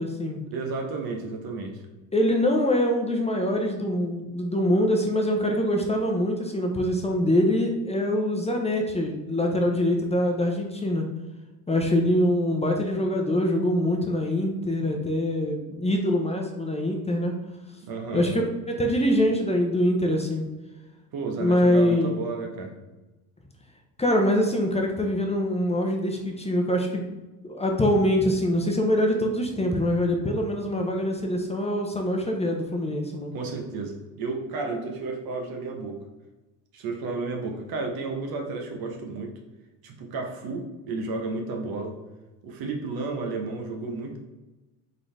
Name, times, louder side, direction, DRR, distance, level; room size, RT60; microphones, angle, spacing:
voice 1, 0.0-0.4 2.1-11.0 11.7-17.4 18.1-20.5 21.4-22.1 24.0-27.1 27.4-33.3, left 1 dB, 15° left, 1 dB, 0.8 m, -24 dB
voice 2, 0.5-1.8 17.8-18.3 21.1-22.7 33.3-36.0 36.7-39.3 39.8-41.9 42.4-44.2, right 3 dB, 60° right, 2 dB, 1.0 m, -32 dB
3.9 x 3.8 x 3.3 m, 1.1 s
hypercardioid pair, 70°, 42 cm